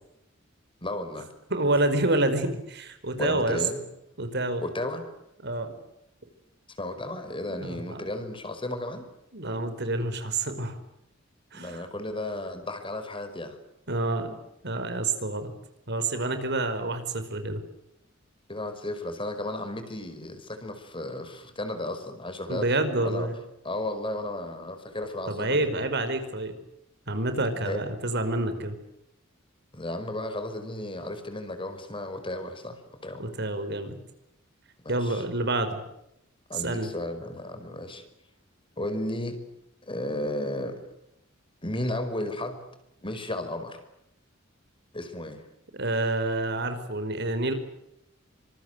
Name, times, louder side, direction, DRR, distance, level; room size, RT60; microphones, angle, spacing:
voice 1, 0.8-1.3 3.1-3.8 4.6-5.0 6.8-9.0 11.5-13.6 18.5-22.7 23.0-23.3 23.6-25.6 27.6-27.8 29.7-33.2 34.8-35.2 36.5-38.0 38.8-39.4 39.9-40.8 41.6-42.6 43.0-43.8 44.9-45.4, left 1 dB, 25° left, 9 dB, 5.0 m, -34 dB
voice 2, 1.5-3.6 4.2-4.7 5.4-5.7 7.5-8.0 9.3-10.8 11.5-11.8 13.9-14.4 14.6-15.5 15.9-17.6 22.5-23.3 25.3-26.5 27.1-28.7 33.2-33.9 34.9-35.8 36.5-36.9 45.7-47.5, right 2 dB, 60° right, 9 dB, 5.0 m, -28 dB
28.0 x 26.0 x 8.0 m, 0.81 s
head